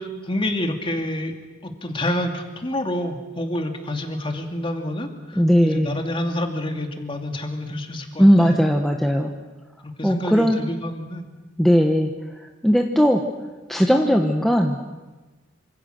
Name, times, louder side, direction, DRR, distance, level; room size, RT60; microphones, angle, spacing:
voice 1, 0.0-1.3 1.6-8.6 9.8-11.2, left 1 dB, 25° left, 4 dB, 2.5 m, -28 dB
voice 2, 5.4-5.9 8.2-9.3 10.0-10.6 11.6-12.1 12.6-13.2 13.7-14.8, equal, ahead, 2 dB, 1.2 m, -18 dB
28.0 x 25.5 x 6.5 m, 1.2 s
head